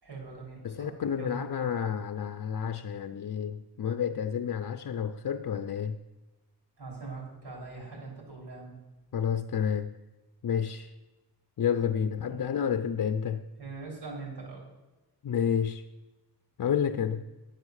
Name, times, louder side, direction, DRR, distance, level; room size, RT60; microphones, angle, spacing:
voice 1, 0.0-1.4 6.8-8.7 12.3-12.4 13.6-14.6, right 3 dB, 90° right, 3.4 m, -42 dB
voice 2, 0.6-6.0 9.1-10.0 10.4-10.9 11.6-13.4 15.2-15.8 16.6-17.2, left 8 dB, 55° left, 0.5 m, -30 dB
10.5 x 7.8 x 6.4 m
wide cardioid pair, 100°, 39 cm